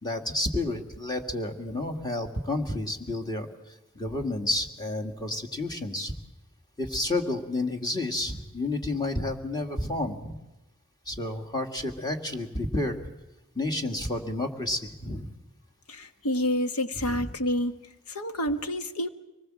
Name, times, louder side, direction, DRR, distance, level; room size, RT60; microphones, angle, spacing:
voice 1, 0.0-3.6 4.0-6.1 6.8-10.4 11.1-13.0 13.6-15.3 17.0-17.3, left 2 dB, 20° left, 3 dB, 2.0 m, -30 dB
voice 2, 15.9-17.8 18.1-19.1, equal, 85° left, 8 dB, 1.4 m, -28 dB
25.0 x 19.5 x 7.6 m, 1.0 s
head